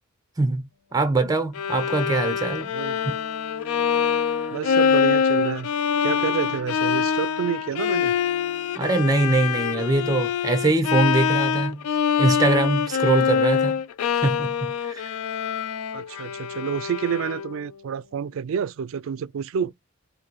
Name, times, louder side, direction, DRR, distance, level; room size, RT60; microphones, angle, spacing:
voice 1, 0.9-2.7 3.0-3.1 8.8-11.8 12.2-13.8 14.1-15.1, right 2 dB, 15° right, 0.6 m, -23 dB
Bowed string instrument, 1.5-17.6, left 7 dB, 85° left, 0.4 m, -24 dB
Bowed string instrument 2, 2.8-9.9, right 2 dB, 35° left, 1.1 m, -43 dB
voice 2, 4.5-5.7 6.0-8.1 15.9-19.7, right 7 dB, 65° right, 0.3 m, -29 dB
4.6 x 2.6 x 4.0 m
head